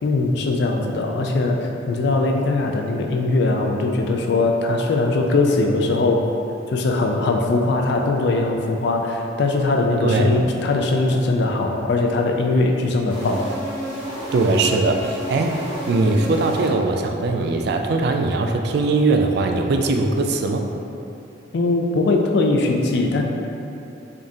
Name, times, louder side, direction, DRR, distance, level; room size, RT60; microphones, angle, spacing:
voice 1, 0.0-6.2 6.7-13.5 21.5-23.2, left 2 dB, 60° left, 2 dB, 0.4 m, -20 dB
voice 2, 10.0-10.3 14.3-20.7, right 3 dB, 60° right, 3 dB, 0.3 m, -20 dB
sound 1, 13.1-17.2, equal, 15° left, 1.1 m, -31 dB
3.6 x 3.5 x 2.7 m, 2.8 s
head